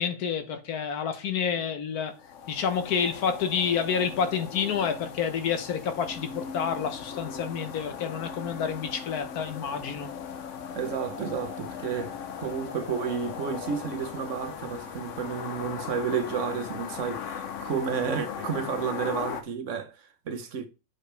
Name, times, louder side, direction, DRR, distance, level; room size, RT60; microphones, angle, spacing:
voice 1, 0.0-2.1 2.5-10.1, left 7 dB, 80° left, 1.5 m, -29 dB
sound 1, 2.1-19.4, left 7 dB, 60° left, 1.1 m, -38 dB
voice 2, 10.7-20.7, right 6 dB, 55° right, 1.3 m, -31 dB
8.0 x 4.9 x 3.3 m
omnidirectional pair, 1.6 m